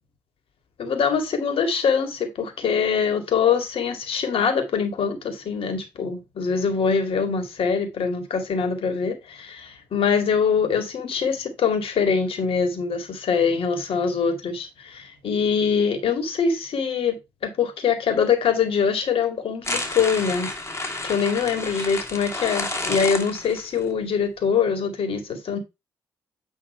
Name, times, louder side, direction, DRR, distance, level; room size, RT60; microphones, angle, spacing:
voice 1, 0.8-20.5 21.0-25.6, left 6 dB, 60° left, 2.2 m, -23 dB
sound 1, 19.6-23.8, left 2 dB, 25° left, 2.6 m, -30 dB
9.0 x 3.5 x 5.3 m
hypercardioid pair, 45°, 11 cm